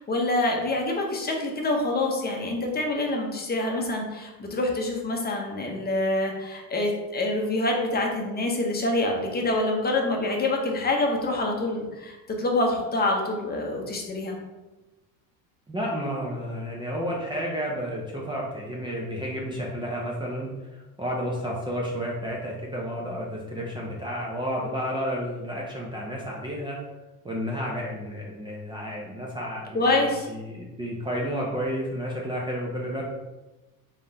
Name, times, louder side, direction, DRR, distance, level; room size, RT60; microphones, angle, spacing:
voice 1, 0.0-14.4 29.7-30.3, left 2 dB, 25° left, 1 dB, 0.8 m, -26 dB
voice 2, 15.7-26.8 27.2-33.0, equal, 10° right, -3 dB, 0.5 m, -31 dB
3.6 x 3.5 x 2.7 m, 1.1 s
supercardioid pair, 105°, 40 cm